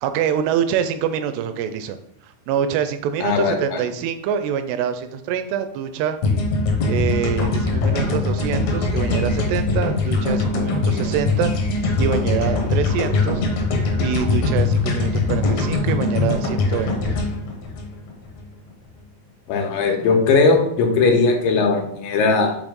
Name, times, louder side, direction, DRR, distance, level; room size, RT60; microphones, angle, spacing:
voice 1, 0.0-2.0 2.2-6.2 6.9-13.4 14.0-17.2, right 8 dB, 85° right, 9 dB, 2.4 m, -25 dB
voice 2, 3.2-3.8 19.5-22.6, left 4 dB, 85° left, 2 dB, 3.5 m, -18 dB
sound 1, 6.2-18.4, left 3 dB, 70° left, 1.7 m, -21 dB
8.4 x 3.1 x 5.2 m, 0.72 s
omnidirectional pair, 5.0 m